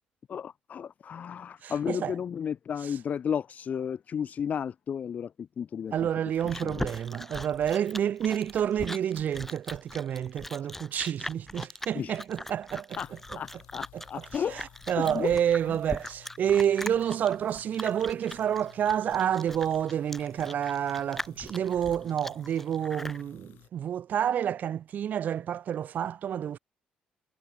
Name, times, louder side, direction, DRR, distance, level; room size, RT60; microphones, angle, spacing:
voice 1, 0.3-5.9 6.6-6.9 11.9-12.2 13.0-13.1 13.4-14.6 15.0-15.4, left 7 dB, 50° left, 1.1 m, -33 dB
voice 2, 1.6-2.2 2.8-3.0 5.9-13.4 13.9-26.6, right 9 dB, 60° right, 0.5 m, -29 dB
Chewing mastication, 6.0-23.2, left 1 dB, 10° left, 2.8 m, -40 dB
sound 1, 12.9-23.7, left 15 dB, 80° left, 5.1 m, -56 dB
supercardioid pair, 75°, 3 cm